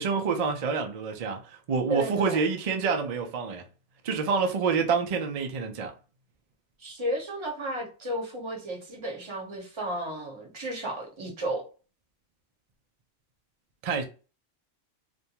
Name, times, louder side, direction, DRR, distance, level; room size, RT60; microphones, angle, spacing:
voice 1, 0.0-3.7 4.0-5.9 13.8-14.0, right 5 dB, 60° right, 0.4 m, -27 dB
voice 2, 1.9-2.4 6.8-11.6, right 1 dB, 25° right, 0.8 m, -33 dB
2.5 x 2.2 x 2.8 m
omnidirectional pair, 1.3 m